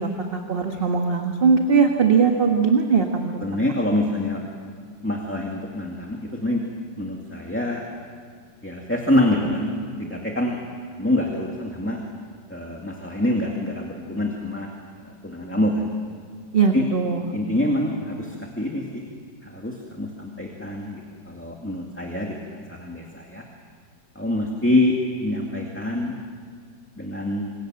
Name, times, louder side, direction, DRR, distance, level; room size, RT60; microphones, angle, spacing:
voice 1, 0.0-3.4 16.5-17.2, right 5 dB, 35° right, 3 dB, 1.6 m, -20 dB
voice 2, 3.4-4.4 5.0-6.7 7.0-7.8 8.6-9.7 10.0-10.6 11.0-12.0 12.5-14.7 15.0-15.9 16.7-16.9 17.3-19.0 19.4-21.0 21.3-23.4 24.2-26.2 27.0-27.5, left 1 dB, 5° left, 0 dB, 2.1 m, -25 dB
26.5 x 26.5 x 7.7 m, 2.1 s
omnidirectional pair, 1.9 m